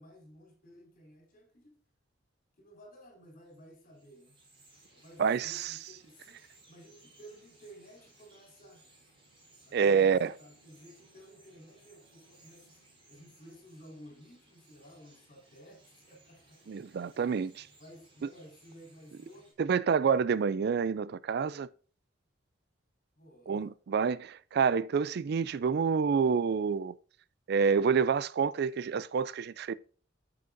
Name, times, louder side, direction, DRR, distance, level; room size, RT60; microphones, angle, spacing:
voice 1, 0.0-1.7 2.6-4.4 4.9-6.4 6.7-8.8 9.6-12.8 13.1-16.8 17.8-19.5 23.2-23.7, equal, 45° left, 4.1 m, -54 dB
Bird vocalization bird call bird song, 3.4-19.5, right 2 dB, 30° right, 3.8 m, -62 dB
voice 2, 5.2-5.7 9.7-10.3 16.7-17.7 19.6-21.7 23.5-26.9 27.5-29.7, right 6 dB, 55° right, 0.4 m, -28 dB
9.4 x 7.8 x 2.6 m
head